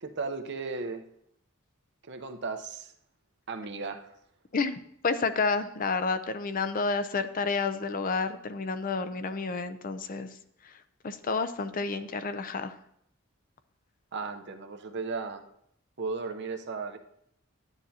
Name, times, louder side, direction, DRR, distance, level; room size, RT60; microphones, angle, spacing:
voice 1, 0.0-1.0 2.0-2.9 3.5-4.1 14.1-15.4 16.0-17.0, right 4 dB, 55° right, 6 dB, 0.8 m, -35 dB
voice 2, 4.5-10.3 11.0-12.7, left 4 dB, 40° left, 11 dB, 0.5 m, -30 dB
11.5 x 9.8 x 2.8 m, 0.71 s
head